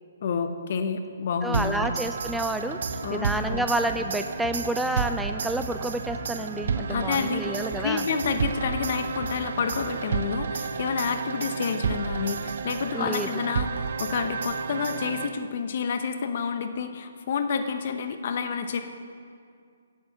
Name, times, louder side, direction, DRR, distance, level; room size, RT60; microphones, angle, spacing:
voice 1, 0.2-1.9 3.0-3.6 6.9-18.8, left 6 dB, 50° left, 8 dB, 0.9 m, -29 dB
voice 2, 1.4-8.0 12.9-13.3, right 1 dB, 5° right, 7 dB, 0.3 m, -29 dB
sound 1, 1.5-15.7, right 5 dB, 60° right, 0.5 m, -31 dB
sound 2, 2.2-2.4 2.8-3.0 3.3-4.2 4.4-6.3 6.5-6.8 7.1-7.3 7.7-7.9 8.2-9.9, right 2 dB, 40° right, 1.2 m, -40 dB
8.7 x 7.9 x 6.9 m, 2.2 s
figure-of-eight pair, 135°, 0 cm